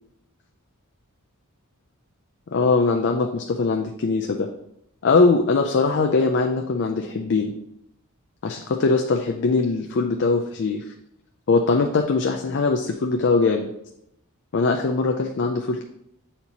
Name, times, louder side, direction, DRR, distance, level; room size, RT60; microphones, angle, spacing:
voice 1, 2.5-4.5 5.0-7.5 8.4-10.8 11.5-13.7 14.5-15.8, left 4 dB, 55° left, 4 dB, 0.4 m, -21 dB
8.0 x 4.3 x 2.9 m, 0.80 s
head